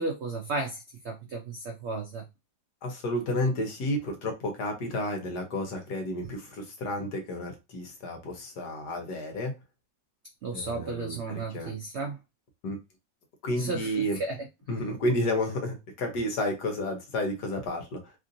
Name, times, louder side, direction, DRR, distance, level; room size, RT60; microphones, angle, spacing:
voice 1, 0.0-2.2 10.4-12.2 13.6-14.4, right 3 dB, 75° right, 0.6 m, -34 dB
voice 2, 2.8-9.5 10.5-11.7 12.6-12.8 13.4-14.2 14.7-18.1, left 1 dB, 70° left, 1.5 m, -31 dB
3.5 x 2.5 x 2.6 m
omnidirectional pair, 1.9 m